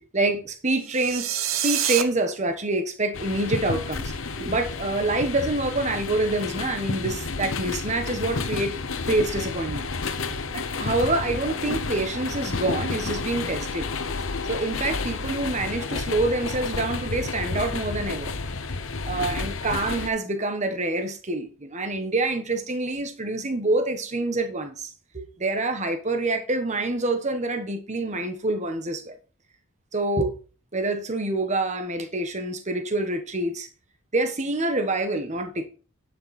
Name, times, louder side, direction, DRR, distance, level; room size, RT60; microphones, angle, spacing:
voice 1, 0.1-1.4 1.6-4.1 4.4-8.8 9.0-9.9 10.5-13.9 14.5-18.3 19.1-29.1 29.9-30.3 30.7-33.7 34.1-35.7, right 2 dB, 35° right, 1.3 m, -26 dB
sound 1, 0.8-2.0, right 10 dB, 75° right, 1.0 m, -26 dB
sound 2, 3.1-20.1, left 4 dB, 70° left, 0.9 m, -31 dB
10.5 x 6.7 x 4.2 m
head